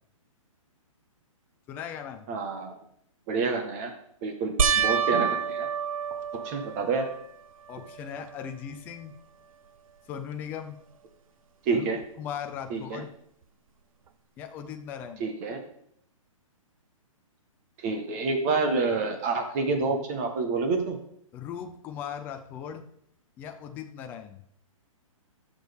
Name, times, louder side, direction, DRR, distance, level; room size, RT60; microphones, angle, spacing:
voice 1, 1.7-2.3 7.7-9.1 10.1-10.8 11.7-11.9 12.2-13.1 14.4-15.3 21.3-22.8 23.4-24.4, left 8 dB, 10° left, 5 dB, 0.4 m, -38 dB
voice 2, 2.3-2.7 3.3-3.9 4.2-5.7 6.4-7.1 11.6-12.0 12.7-13.0 15.2-15.6 17.8-21.0, right 4 dB, 25° right, 5 dB, 1.3 m, -28 dB
sound 1, 4.6-7.2 7.8-8.4 8.7-8.8 12.0-12.1, right 7 dB, 80° right, 0.7 m, -28 dB
13.0 x 6.4 x 3.5 m, 0.71 s
hypercardioid pair, 165°, 18 cm